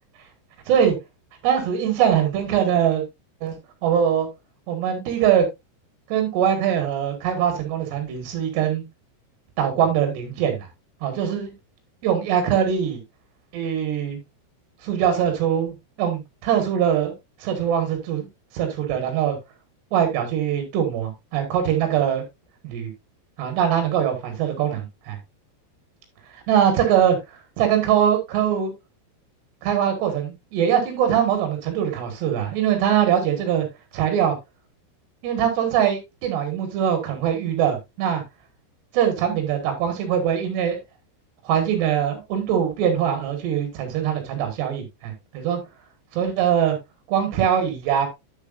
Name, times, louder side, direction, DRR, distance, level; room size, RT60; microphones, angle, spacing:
voice 1, 1.4-3.0 3.4-4.3 4.7-5.5 6.1-8.8 9.6-10.7 11.0-11.5 12.0-13.0 13.5-14.2 14.8-17.1 17.4-18.3 18.5-19.4 19.9-22.2 22.6-22.9 23.4-25.2 26.3-28.7 29.6-33.7 33.9-34.4 35.2-38.2 38.9-40.8 41.5-45.6 46.1-46.8 47.1-48.1, right 9 dB, 65° right, 3.7 m, -22 dB
9.7 x 8.2 x 2.6 m
omnidirectional pair, 5.5 m